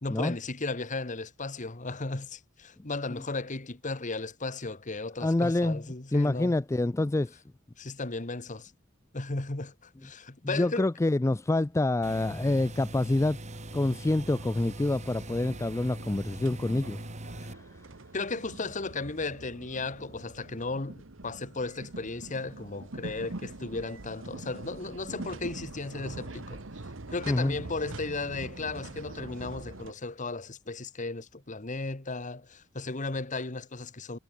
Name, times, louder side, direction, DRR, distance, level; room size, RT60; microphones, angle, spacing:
voice 1, 0.0-6.6 7.8-8.7 9.1-10.9 18.1-26.6 27.1-34.2, left 3 dB, 40° left, 1.4 m, -35 dB
voice 2, 5.2-5.8 6.1-7.4 10.4-13.4 13.7-17.6 27.3-27.6, left 2 dB, 15° left, 0.4 m, -27 dB
sound 1, 12.0-17.5, right 1 dB, 35° right, 3.8 m, -41 dB
sound 2, 13.5-29.9, right 2 dB, 75° right, 1.5 m, -44 dB
head